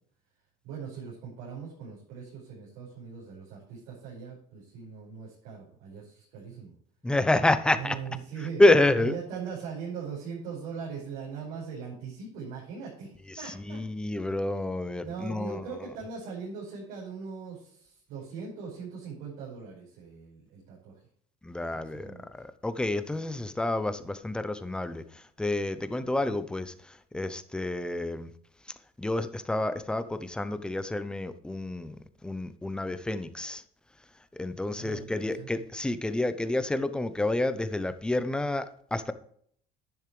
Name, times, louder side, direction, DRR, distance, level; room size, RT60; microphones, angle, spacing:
voice 1, 0.6-6.7 7.7-8.6 9.0-13.8 15.0-20.9 21.7-22.3 34.7-35.5, right 6 dB, 90° right, 5.2 m, -40 dB
voice 2, 7.0-8.0 8.6-9.1 13.5-15.6 21.4-26.7 27.1-28.3 29.0-33.6 34.3-39.1, left 2 dB, 5° left, 0.6 m, -28 dB
10.5 x 10.0 x 3.2 m
cardioid pair, 160°, 15 cm